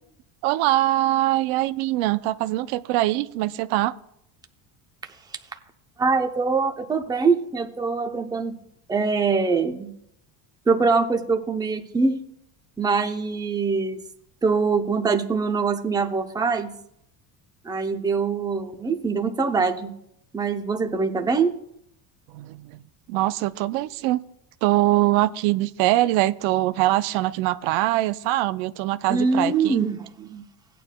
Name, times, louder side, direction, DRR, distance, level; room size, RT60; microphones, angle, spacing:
voice 1, 0.4-3.9 22.3-22.8 23.1-24.2 24.6-29.9, right 16 dB, 80° right, 13 dB, 0.6 m, -23 dB
voice 2, 6.0-8.6 8.9-9.9 10.7-12.2 12.8-14.0 14.4-16.7 17.6-19.9 20.3-21.5 29.1-30.4, right 4 dB, 10° right, 5 dB, 0.6 m, -23 dB
16.5 x 9.2 x 2.2 m, 0.76 s
cardioid pair, 120°, 47 cm